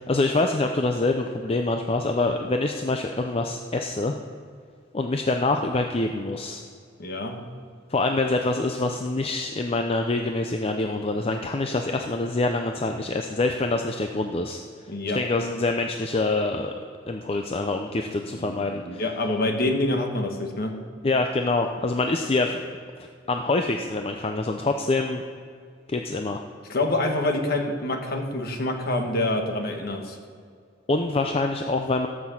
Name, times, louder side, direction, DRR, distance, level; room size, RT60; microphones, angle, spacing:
voice 1, 0.0-4.2 4.9-6.6 7.9-14.6 15.1-16.7 17.1-19.0 21.0-22.6 23.3-25.2 25.9-26.4 30.9-32.1, left 2 dB, 30° left, 4 dB, 0.5 m, -25 dB
voice 2, 7.0-7.4 14.9-15.2 18.3-20.8 26.7-30.2, left 2 dB, 55° left, 3 dB, 1.4 m, -26 dB
14.0 x 6.2 x 7.2 m, 2.2 s
head